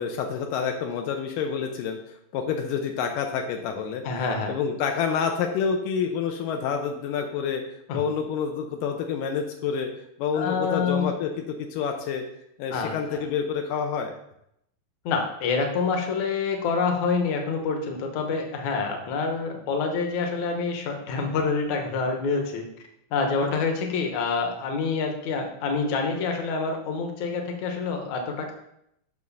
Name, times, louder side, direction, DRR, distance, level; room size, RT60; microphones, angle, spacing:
voice 1, 0.0-2.0 2.3-4.0 4.5-7.6 7.9-9.9 10.2-12.2 12.6-14.1, left 6 dB, 85° left, 4 dB, 2.4 m, -28 dB
voice 2, 4.0-4.5 7.9-8.0 10.3-11.1 12.7-13.3 15.1-22.6 23.1-28.5, left 4 dB, 65° left, 3 dB, 2.4 m, -27 dB
7.2 x 6.2 x 5.5 m, 0.77 s
omnidirectional pair, 3.8 m